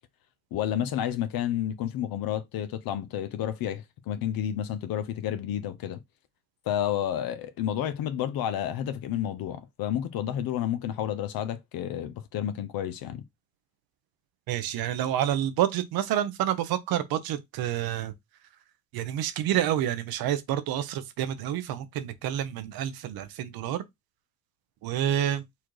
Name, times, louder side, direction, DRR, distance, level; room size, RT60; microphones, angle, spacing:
voice 1, 0.5-6.0 6.7-13.2, left 10 dB, 75° left, 0.7 m, -30 dB
voice 2, 14.5-18.1 18.9-23.8 24.8-25.4, right 11 dB, 80° right, 0.8 m, -28 dB
4.2 x 2.5 x 4.6 m
cardioid pair, 85°, 36 cm